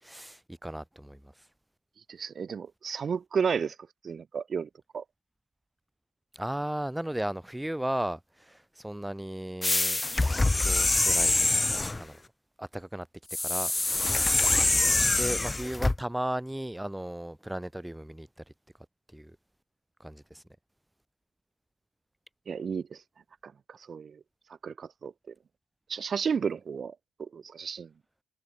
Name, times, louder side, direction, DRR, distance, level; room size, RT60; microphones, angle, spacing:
voice 1, 0.0-1.3 6.3-10.0 10.4-11.6 11.9-12.2 12.6-13.1 13.4-14.2 14.7-18.3 19.1-19.4 20.0-20.4, right 1 dB, 5° right, 4.2 m, -36 dB
voice 2, 2.1-3.7 4.0-5.0 22.5-23.0 23.7-24.2 24.6-25.1 25.9-27.9, right 6 dB, 45° right, 1.3 m, -32 dB
sound 1, 9.6-12.0 13.3-16.0, left 2 dB, 15° left, 3.1 m, -25 dB
cardioid pair, 90°, 0 cm